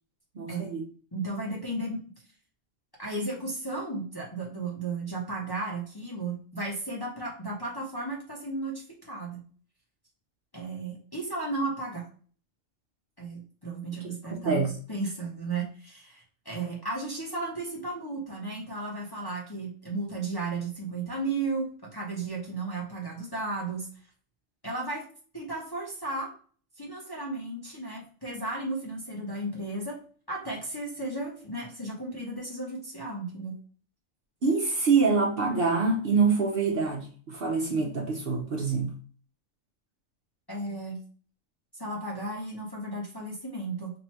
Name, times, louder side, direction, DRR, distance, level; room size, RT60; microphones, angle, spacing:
voice 1, 0.3-0.9 14.4-14.7 34.4-38.9, right 4 dB, 55° right, 1 dB, 0.8 m, -25 dB
voice 2, 1.1-2.0 3.0-9.4 10.5-12.1 13.2-14.6 14.9-23.9 24.6-25.0 25.3-26.3 26.8-30.0 30.3-33.5 40.5-41.0 41.7-43.9, right 2 dB, 20° left, -3 dB, 0.7 m, -34 dB
2.9 x 2.6 x 4.3 m, 0.43 s
omnidirectional pair, 1.3 m